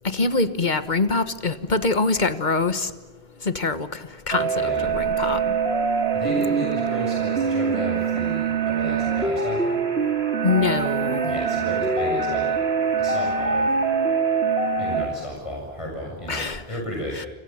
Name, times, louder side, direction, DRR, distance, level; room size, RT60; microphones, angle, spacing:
voice 1, 0.0-2.9 3.4-5.5 10.4-11.4 16.3-16.6 17.1-17.3, left 3 dB, 45° left, 12 dB, 1.5 m, -24 dB
sound 1, 4.3-15.1, right 5 dB, 85° right, 2.4 m, -24 dB
voice 2, 4.5-4.9 5.8-9.8 11.2-12.5 13.0-13.7 14.8-17.2, equal, 30° left, -1 dB, 7.2 m, -33 dB
28.5 x 26.5 x 7.3 m, 1.1 s
omnidirectional pair, 1.1 m